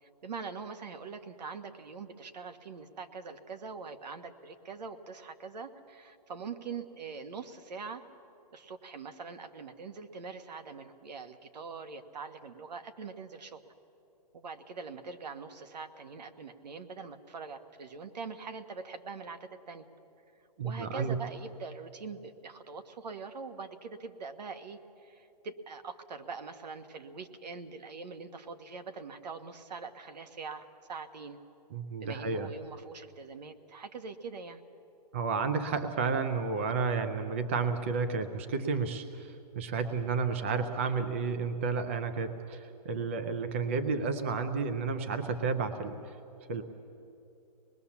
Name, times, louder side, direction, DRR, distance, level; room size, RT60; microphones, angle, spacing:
voice 1, 0.0-8.0 8.5-13.7 14.3-19.8 20.6-31.4 32.0-34.6, right 5 dB, 75° right, 8 dB, 1.5 m, -43 dB
voice 2, 20.6-21.2 31.7-32.5 35.1-46.2 46.5-46.6, right 5 dB, 20° right, 8 dB, 0.5 m, -31 dB
25.0 x 20.5 x 7.2 m, 2.9 s
hypercardioid pair, 180°, 21 cm